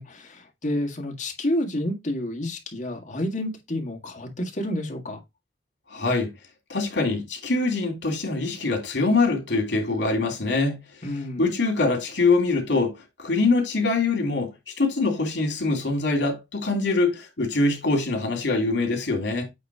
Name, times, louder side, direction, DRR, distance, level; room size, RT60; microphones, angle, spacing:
voice 1, 0.0-5.2 11.0-11.5, left 1 dB, 45° left, 1.8 m, -29 dB
voice 2, 5.9-6.3 6.7-10.8 11.4-12.9 13.2-14.5 14.8-19.4, left 3 dB, 75° left, 3.0 m, -23 dB
8.4 x 3.1 x 4.8 m
head